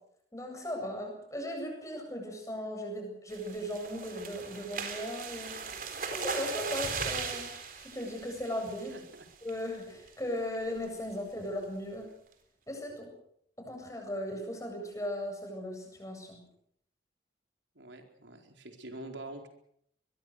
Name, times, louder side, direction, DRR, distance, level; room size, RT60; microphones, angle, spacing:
voice 1, 0.3-7.5 7.8-9.0 9.4-12.1 12.7-13.1 13.6-16.4, left 1 dB, 15° left, 2 dB, 8.0 m, -37 dB
sound 1, 3.3-9.1 9.5-9.8 10.1-10.2 10.5-10.8, right 5 dB, 50° right, 3.9 m, -38 dB
voice 2, 8.9-9.3 17.7-19.5, right 1 dB, 85° right, 4 dB, 4.6 m, -45 dB
24.5 x 21.5 x 6.7 m, 0.69 s
head